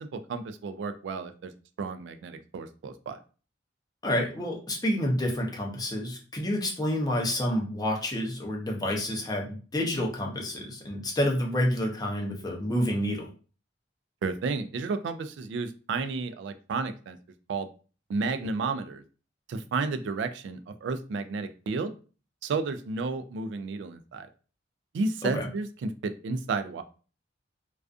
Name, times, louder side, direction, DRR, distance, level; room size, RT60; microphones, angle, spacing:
voice 1, 0.0-1.5 1.8-3.2 14.2-17.2 17.5-17.7 18.1-19.0 19.5-21.9 22.4-24.3 24.9-26.8, right 4 dB, 70° right, 10 dB, 0.3 m, -32 dB
voice 2, 4.0-13.3 25.2-25.5, left 1 dB, 20° left, -1 dB, 0.6 m, -29 dB
2.4 x 2.3 x 2.4 m, 0.37 s
head